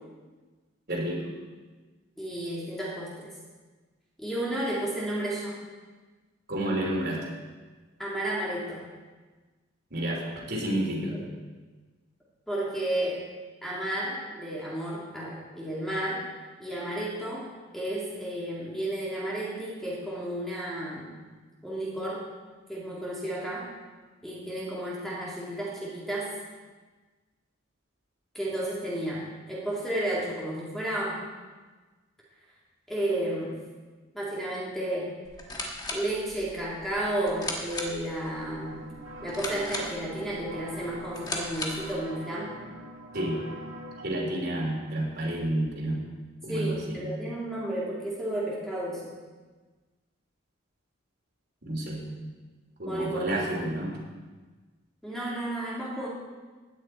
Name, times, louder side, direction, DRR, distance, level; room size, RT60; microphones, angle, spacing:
voice 1, 0.9-1.3 6.5-7.2 9.9-11.2 43.1-43.4 44.0-46.0 46.4-47.0 51.6-52.0 52.8-53.9, right 1 dB, 50° right, -2 dB, 3.2 m, -30 dB
voice 2, 2.2-3.3 4.2-5.6 8.0-8.8 12.5-13.2 13.6-16.3 16.6-21.1 21.6-22.3 22.7-23.7 24.2-26.3 28.3-31.2 32.9-33.6 34.1-35.1 35.9-38.8 39.2-42.5 46.5-49.1 52.8-53.4 55.0-56.1, right 1 dB, ahead, -6 dB, 2.3 m, -32 dB
sound 1, 35.2-42.0, left 2 dB, 20° left, 1.5 m, -38 dB
sound 2, 38.2-44.2, right 1 dB, 80° right, 1.8 m, -44 dB
16.0 x 10.0 x 4.4 m, 1.3 s
head